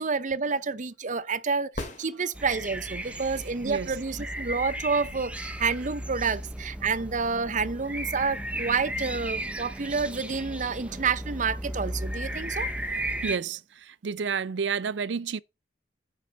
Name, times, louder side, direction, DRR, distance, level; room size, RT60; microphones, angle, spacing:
voice 1, 0.0-12.7, right 5 dB, 45° right, 0.8 m, -29 dB
sound 1, 1.7-2.9 6.8-6.9, left 2 dB, 45° left, 3.0 m, -38 dB
sound 2, 2.3-13.4, right 1 dB, 5° right, 0.8 m, -35 dB
voice 2, 3.0-3.9 13.2-15.4, right 6 dB, 85° right, 0.5 m, -31 dB
9.6 x 5.0 x 6.6 m
head